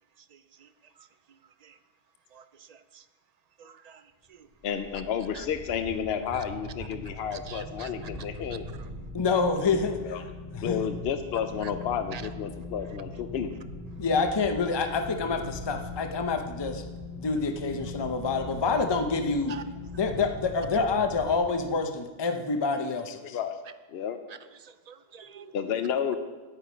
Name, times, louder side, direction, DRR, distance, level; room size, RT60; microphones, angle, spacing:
voice 1, 3.6-4.0 5.3-5.4 7.3-7.9 12.1-12.2 19.5-19.6 24.6-25.5, right 7 dB, 55° right, 12 dB, 0.5 m, -45 dB
sound 1, 4.5-21.9, left 2 dB, 90° right, 2.8 m, -41 dB
voice 2, 4.6-8.7 9.6-9.8 10.0-10.2 10.6-13.5 23.2-23.6 23.9-24.2 25.5-26.2, left 8 dB, 80° left, 8 dB, 0.9 m, -31 dB
voice 3, 9.1-10.2 10.5-10.8 14.0-16.8 17.1-19.6 19.9-23.4, left 4 dB, 30° left, 6 dB, 0.7 m, -27 dB
10.0 x 9.1 x 5.0 m, 1.3 s
omnidirectional pair, 1.0 m